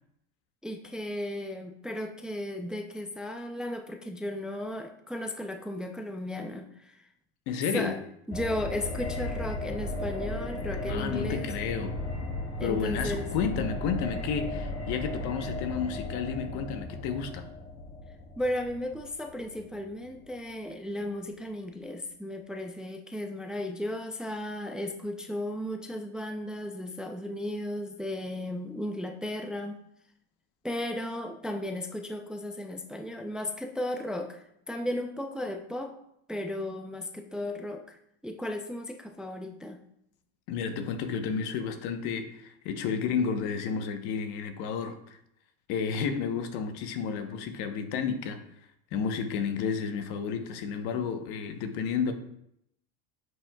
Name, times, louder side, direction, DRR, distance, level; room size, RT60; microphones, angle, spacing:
voice 1, 0.6-7.1 7.7-8.0 8.3-11.5 12.6-13.3 18.4-29.8 30.6-35.9 36.3-38.0 38.2-39.8, left 1 dB, ahead, 0.5 m, -35 dB
voice 2, 7.5-8.0 10.9-12.0 12.6-17.5 40.5-45.0 45.7-48.4 48.9-52.1, left 6 dB, 70° left, 1.1 m, -31 dB
sound 1, 8.3-20.2 20.4-20.5, left 2 dB, 30° left, 1.8 m, -35 dB
9.5 x 6.3 x 2.3 m
supercardioid pair, 110°, 40 cm